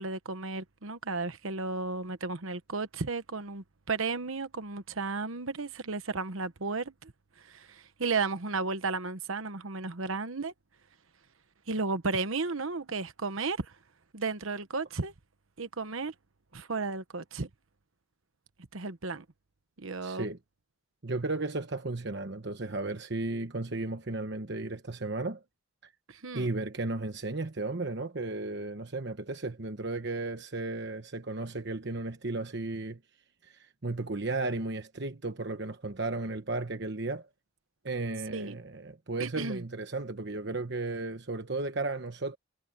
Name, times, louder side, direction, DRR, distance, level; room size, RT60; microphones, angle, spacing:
voice 1, 0.0-7.1 7.4-10.5 11.7-13.7 14.1-15.1 15.6-16.1 16.5-17.5 18.7-19.2 19.8-20.3 26.1-26.5 38.3-38.6 39.2-39.6, right 4 dB, 75° right, 1.1 m, -34 dB
voice 2, 20.0-20.4 21.0-25.4 26.3-33.0 33.4-37.3 37.8-42.4, right 2 dB, 55° right, 1.1 m, -34 dB
head